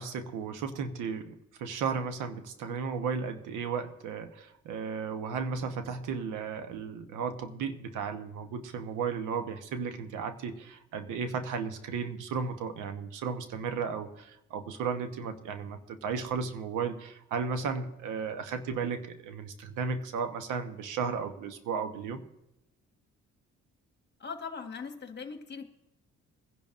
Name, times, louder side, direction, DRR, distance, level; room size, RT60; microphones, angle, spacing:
voice 1, 0.0-22.2, right 5 dB, 90° right, 8 dB, 1.1 m, -34 dB
voice 2, 24.2-25.6, left 5 dB, 35° left, 6 dB, 1.4 m, -40 dB
21.5 x 10.5 x 2.5 m, 0.91 s
cardioid pair, 90°, 30 cm